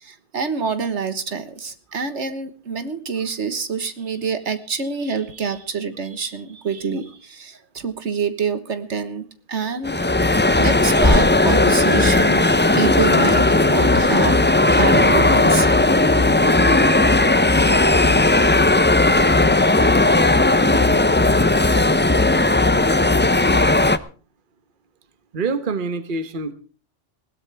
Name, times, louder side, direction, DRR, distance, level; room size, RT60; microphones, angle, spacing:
voice 1, 0.0-9.9 10.6-12.5 12.7-14.4 14.7-15.7, right 5 dB, 70° right, 10 dB, 1.7 m, -26 dB
sound 1, 9.8-24.0, left 2 dB, 15° left, 0.4 m, -16 dB
voice 2, 25.3-26.5, right 4 dB, 45° right, 12 dB, 1.3 m, -26 dB
20.5 x 16.5 x 3.4 m, 0.38 s
omnidirectional pair, 1.2 m